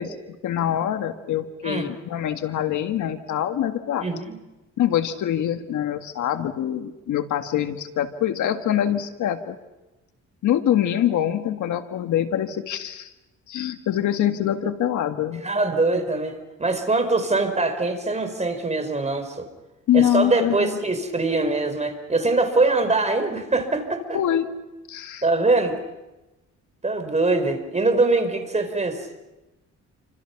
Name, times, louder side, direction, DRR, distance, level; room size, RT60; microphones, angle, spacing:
voice 1, 0.0-4.1 4.8-9.6 10.4-13.1 13.5-15.4 19.9-20.8 24.1-24.5 24.9-25.2, left 11 dB, 75° left, 7 dB, 1.8 m, -24 dB
voice 2, 4.0-4.4 15.4-19.5 19.9-24.2 25.2-25.8 26.8-29.1, right 3 dB, 20° right, 8 dB, 4.9 m, -23 dB
29.0 x 26.0 x 6.0 m, 1.0 s
cardioid pair, 90°, 30 cm